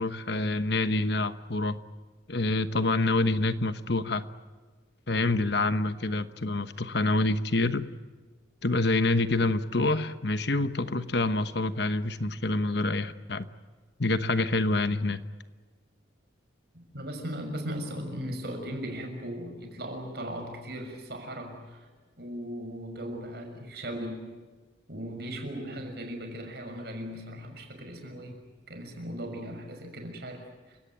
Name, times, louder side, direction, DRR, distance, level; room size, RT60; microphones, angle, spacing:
voice 1, 0.0-1.8 2.3-4.2 5.1-7.9 8.6-13.5 14.0-15.2, left 2 dB, 60° left, 11 dB, 1.1 m, -27 dB
voice 2, 16.7-21.9 22.2-24.3 24.9-28.4 28.7-30.8, equal, 55° right, 4 dB, 6.3 m, -38 dB
28.5 x 17.5 x 9.3 m, 1.4 s
head